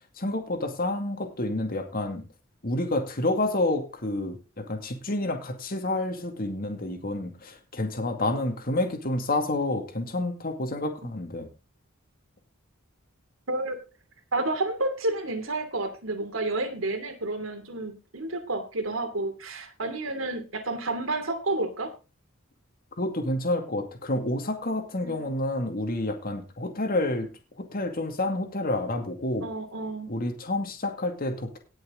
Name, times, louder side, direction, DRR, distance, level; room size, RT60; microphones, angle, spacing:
voice 1, 0.2-2.3 2.6-11.5 23.0-27.3 27.6-29.5 30.1-31.6, left 2 dB, 45° left, 5 dB, 2.3 m, -29 dB
voice 2, 13.5-13.8 14.3-21.9 25.0-25.3 29.4-30.1, right 2 dB, 75° right, 6 dB, 2.8 m, -30 dB
18.5 x 6.3 x 3.8 m, 0.30 s
head